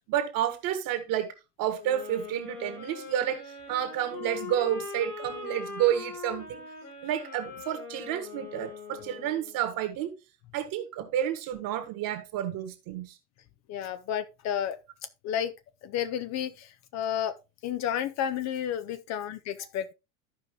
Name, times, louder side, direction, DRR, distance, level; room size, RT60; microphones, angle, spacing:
voice 1, 0.1-3.4 3.7-6.6 7.0-10.1 10.5-13.2, right 11 dB, 45° right, 1.7 m, -30 dB
sound 1, 1.8-9.6, left 5 dB, 85° left, 3.5 m, -41 dB
voice 2, 13.7-14.8 15.2-15.5 15.8-17.3 17.6-19.9, left 9 dB, 35° left, 0.6 m, -31 dB
14.0 x 5.2 x 2.9 m
figure-of-eight pair, 80°, 46 cm